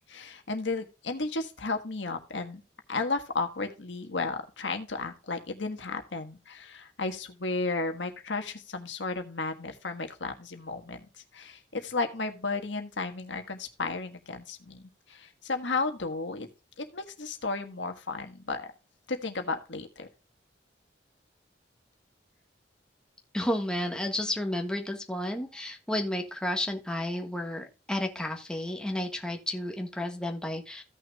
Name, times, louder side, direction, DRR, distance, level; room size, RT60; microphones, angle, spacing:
voice 1, 0.1-2.6 2.9-11.1 11.3-16.5 16.8-18.7 19.1-20.1, left 3 dB, 80° left, 6 dB, 1.5 m, -33 dB
voice 2, 23.3-30.8, left 1 dB, 5° left, 3 dB, 1.4 m, -32 dB
16.0 x 6.3 x 2.3 m, 0.32 s
head